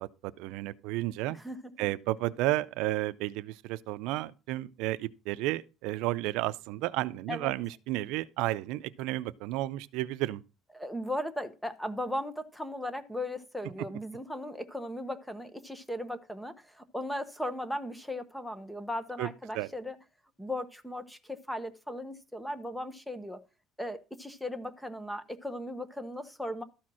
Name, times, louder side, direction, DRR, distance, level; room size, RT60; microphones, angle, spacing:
voice 1, 0.0-1.4 1.8-10.4 19.2-19.3 19.5-19.7, right 17 dB, 85° right, 0.4 m, -32 dB
voice 2, 10.7-20.0 20.4-23.4 23.8-26.6, left 1 dB, ahead, 0.9 m, -37 dB
13.0 x 4.4 x 6.1 m
cardioid pair, 155°, 0 cm